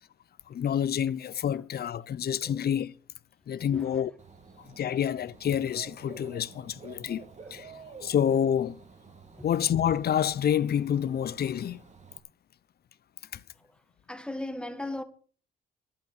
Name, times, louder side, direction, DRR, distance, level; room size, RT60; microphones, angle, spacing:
voice 1, 0.5-2.9 3.5-4.1 4.7-7.2 7.5-7.7 8.0-8.8 9.4-11.8 13.3-13.4, left 9 dB, 50° left, 0.7 m, -28 dB
Dog / Bird, 4.2-12.2, right 5 dB, 35° right, 2.5 m, -50 dB
voice 2, 14.1-15.0, left 1 dB, 5° left, 1.7 m, -36 dB
11.0 x 11.0 x 6.6 m
cardioid pair, 90°, 20 cm